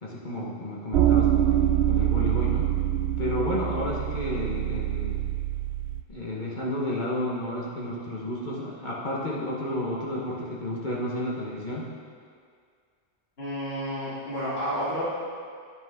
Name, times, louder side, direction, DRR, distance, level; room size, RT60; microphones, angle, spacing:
voice 1, 0.0-2.7 3.2-5.3 6.1-11.9, left 1 dB, 45° left, -5 dB, 1.5 m, -31 dB
sound 1, 0.9-6.0, right 12 dB, 85° right, 0.8 m, -25 dB
voice 2, 13.4-15.0, equal, 70° left, -10 dB, 2.9 m, -30 dB
10.0 x 9.3 x 3.7 m, 2.1 s
omnidirectional pair, 1.1 m